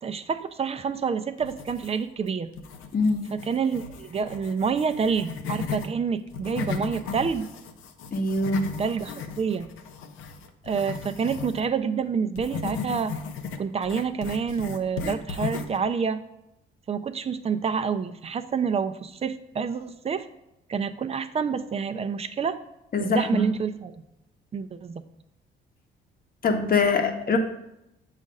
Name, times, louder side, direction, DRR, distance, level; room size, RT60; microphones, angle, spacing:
voice 1, 0.0-2.5 3.3-7.5 8.8-9.7 10.6-13.1 13.6-16.2 16.9-20.3 20.7-22.6 23.0-24.0 24.5-25.0, right 6 dB, 30° right, 10 dB, 0.4 m, -28 dB
sound 1, 1.4-2.2 2.5-5.9 6.3-11.6 12.3-15.8, left 5 dB, 85° left, 0.6 m, -36 dB
voice 2, 2.9-3.3 8.1-8.7 22.9-23.5 26.4-27.4, left 3 dB, 45° left, 5 dB, 0.9 m, -23 dB
7.3 x 2.5 x 5.3 m, 0.86 s
cardioid pair, 90°, 20 cm